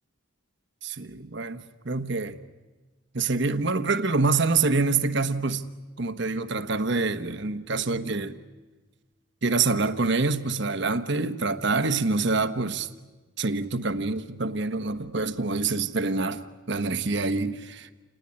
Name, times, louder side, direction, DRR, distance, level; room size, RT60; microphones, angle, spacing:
voice 1, 0.8-2.4 3.1-5.6 6.0-8.4 9.4-12.9 13.4-16.4 16.7-17.9, right 3 dB, 55° right, 10 dB, 1.2 m, -26 dB
29.0 x 19.5 x 9.8 m, 1.3 s
head